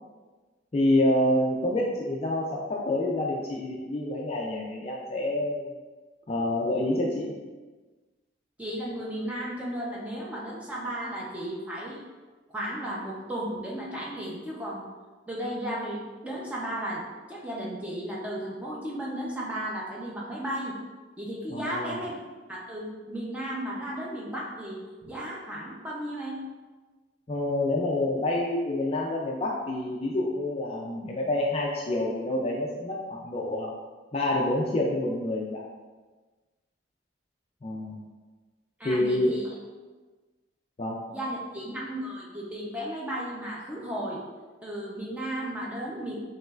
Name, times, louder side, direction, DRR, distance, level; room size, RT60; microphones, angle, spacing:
voice 1, 0.7-5.7 6.3-7.3 21.5-22.0 27.3-33.7 34.1-35.6 37.6-38.0 38.8-39.4 40.8-41.0, left 1 dB, 30° left, -2 dB, 0.3 m, -27 dB
voice 2, 8.6-12.0 12.5-14.8 15.3-20.8 21.2-22.1 22.5-26.4 38.8-39.5 41.1-44.2 44.6-46.2, right 1 dB, 5° right, -5 dB, 0.6 m, -34 dB
5.4 x 3.1 x 2.4 m, 1.3 s
head